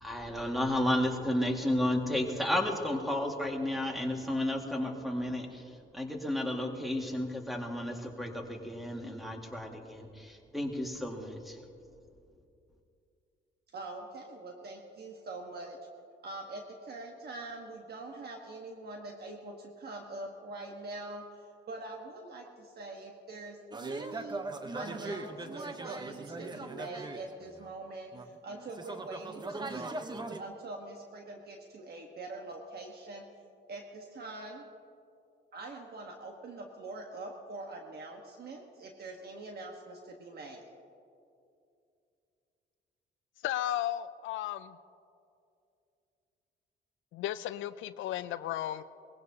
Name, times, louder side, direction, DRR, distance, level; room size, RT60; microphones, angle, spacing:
voice 1, 0.0-5.6 5.9-11.6, left 1 dB, ahead, 2 dB, 1.9 m, -32 dB
voice 2, 13.7-15.8 16.2-24.5 24.7-29.9 30.3-33.2 33.7-34.7 35.5-40.7, right 2 dB, 55° right, 2 dB, 1.3 m, -44 dB
sound 1, 23.7-27.7 28.1-30.4, right 2 dB, 20° right, 0.9 m, -40 dB
voice 3, 43.4-44.8 47.1-48.8, left 12 dB, 80° left, 13 dB, 0.4 m, -34 dB
21.0 x 16.0 x 2.8 m, 2.5 s
cardioid pair, 90°, 20 cm